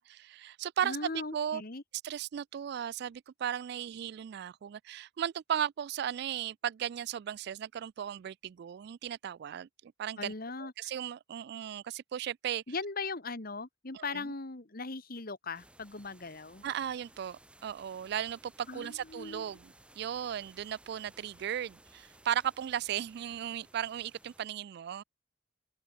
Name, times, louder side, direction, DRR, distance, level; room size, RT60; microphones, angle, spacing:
voice 1, 0.0-1.6 2.0-10.3 10.6-12.6 13.9-14.3 16.6-25.0, right 9 dB, 60° right, 0.3 m, -36 dB
voice 2, 0.8-1.8 10.2-10.9 12.7-16.6 18.7-19.5, left 3 dB, 50° left, 1.8 m, -39 dB
sound 1, 15.5-24.5, right 1 dB, 5° right, 1.8 m, -60 dB
open air
head